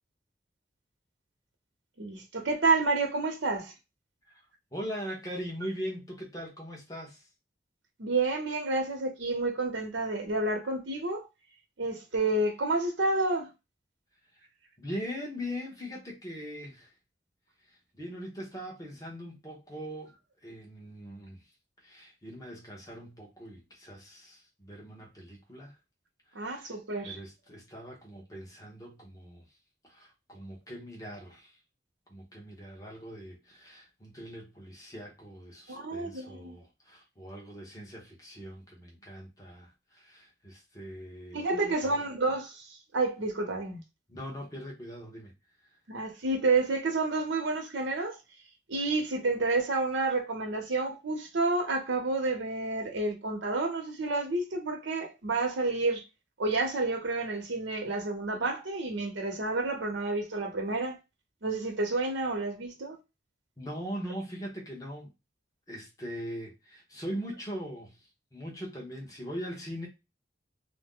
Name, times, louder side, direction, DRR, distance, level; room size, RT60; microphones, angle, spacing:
voice 1, 2.0-3.7 8.0-11.3 11.8-13.5 26.3-27.2 35.7-36.6 41.3-42.7 42.9-43.8 45.9-48.2 48.7-56.0 56.4-61.0 61.4-63.0, right 3 dB, 85° right, 0.8 m, -29 dB
voice 2, 4.7-7.3 14.3-14.5 14.8-16.9 17.7-20.1 20.4-21.4 21.8-25.7 26.4-26.8 27.0-29.4 29.8-31.6 32.1-41.5 41.8-42.1 44.1-45.3 63.6-65.1 65.7-69.9, equal, 20° left, 0.9 m, -41 dB
2.6 x 2.1 x 3.6 m
head